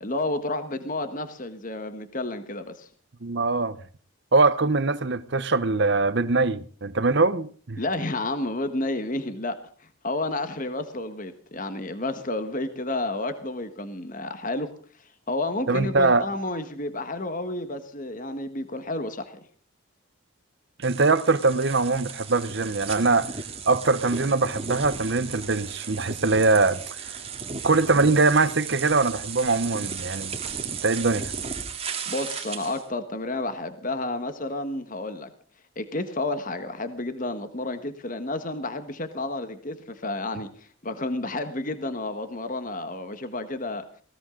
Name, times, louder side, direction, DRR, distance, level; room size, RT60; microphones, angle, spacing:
voice 1, 0.0-2.9 7.8-14.7 15.3-19.4 32.1-35.3 35.7-43.8, left 2 dB, 40° left, 1.4 m, -31 dB
voice 2, 3.2-3.8 4.3-7.8 15.7-16.2 20.8-23.3 23.7-26.8 27.6-30.3 30.7-31.3, right 3 dB, 55° right, 0.9 m, -22 dB
sound 1, 20.8-32.8, right 6 dB, 30° right, 2.0 m, -35 dB
19.5 x 18.0 x 3.8 m
head